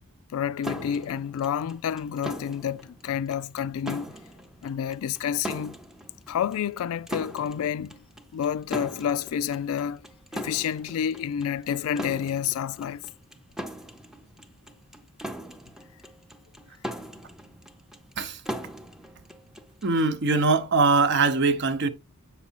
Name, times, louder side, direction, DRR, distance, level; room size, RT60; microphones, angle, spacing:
voice 1, 0.3-4.1 4.6-5.8 6.3-8.0 8.3-10.0 10.3-13.1, left 8 dB, 75° left, 0.3 m, -29 dB
sound 1, 0.6-20.0, equal, ahead, 0.5 m, -40 dB
voice 2, 19.8-21.9, right 3 dB, 55° right, 0.7 m, -22 dB
8.0 x 6.0 x 2.8 m
head